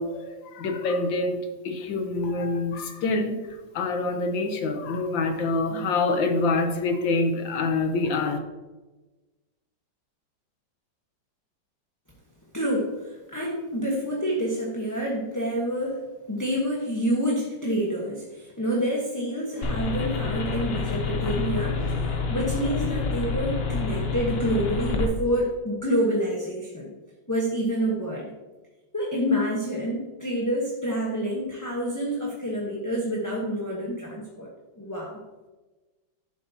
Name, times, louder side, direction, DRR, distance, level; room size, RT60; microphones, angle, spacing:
voice 1, 0.0-1.4 1.6-8.4, left 3 dB, 80° left, 6 dB, 1.7 m, -26 dB
voice 2, 12.5-16.0 16.3-26.9 27.3-28.3 28.9-34.5 34.8-35.2, equal, 10° left, -3 dB, 0.9 m, -28 dB
sound 1, 19.6-25.1, left 4 dB, 50° left, 0.8 m, -28 dB
11.5 x 7.5 x 2.8 m, 1.2 s
omnidirectional pair, 2.1 m